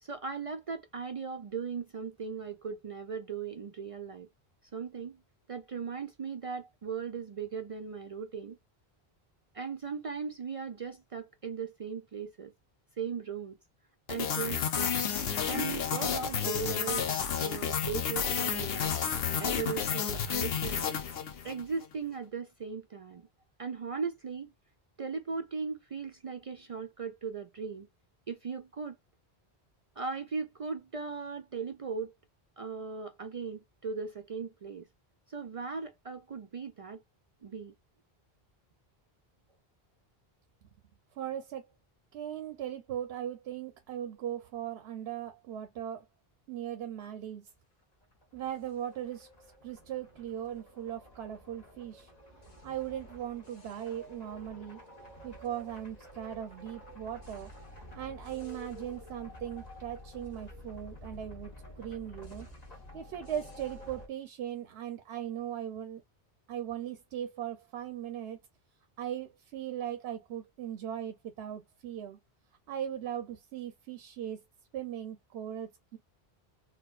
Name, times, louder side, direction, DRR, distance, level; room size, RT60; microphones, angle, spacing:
voice 1, 0.0-4.3 4.7-5.2 5.5-8.6 9.5-12.5 13.0-13.6 14.1-15.0 15.5-18.9 19.4-20.9 21.4-23.3 23.6-24.5 25.0-27.9 28.3-29.0 30.0-32.1 32.6-34.9 35.3-37.0 37.4-37.7, right 5 dB, 55° right, 0.4 m, -38 dB
sound 1, 14.1-21.6, left 7 dB, 70° left, 0.9 m, -31 dB
voice 2, 41.2-41.7 42.1-46.0 46.5-47.4 48.3-49.3 49.6-52.1 52.6-54.8 55.2-57.5 57.9-61.5 61.8-62.5 62.9-66.0 66.5-68.4 69.0-72.2 72.7-74.4 74.7-76.0, right 10 dB, 90° right, 0.9 m, -39 dB
sound 2, 48.0-64.1, left 1 dB, 40° left, 1.1 m, -50 dB
4.2 x 2.3 x 2.4 m
omnidirectional pair, 1.0 m